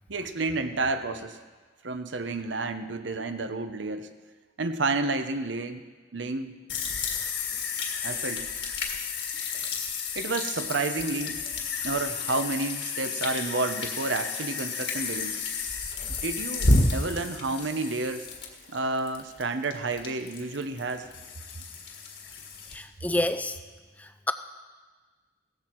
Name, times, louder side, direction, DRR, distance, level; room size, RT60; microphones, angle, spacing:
voice 1, 0.1-1.4 1.8-4.1 4.6-5.8 6.1-6.5 8.0-8.5 10.2-11.5 11.8-15.4 16.1-18.3 18.7-21.1, right 3 dB, 75° right, 9 dB, 0.9 m, -30 dB
sound 1, 6.7-22.8, left 3 dB, 70° left, 1.7 m, -31 dB
voice 2, 22.7-23.6 24.0-24.3, left 1 dB, 10° left, 9 dB, 0.4 m, -29 dB
16.0 x 13.5 x 4.6 m, 1.4 s
head